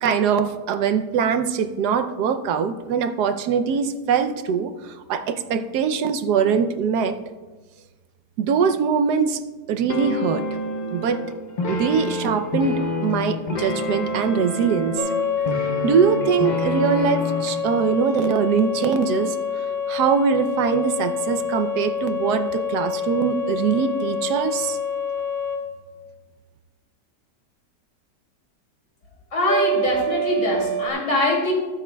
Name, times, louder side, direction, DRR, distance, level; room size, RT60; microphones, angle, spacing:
voice 1, 0.0-7.2 8.4-9.4 9.7-10.4 10.9-11.2 11.7-15.0 15.6-24.8, right 6 dB, 75° right, 10 dB, 1.2 m, -22 dB
sound 1, 9.9-17.6, left 2 dB, 45° left, 0.6 m, -28 dB
sound 2, 15.0-25.6 29.5-30.9, left 3 dB, 40° right, 1.2 m, -26 dB
voice 2, 29.3-31.5, left 2 dB, 85° left, -1 dB, 3.2 m, -23 dB
21.0 x 7.3 x 2.2 m, 1.3 s
omnidirectional pair, 1.8 m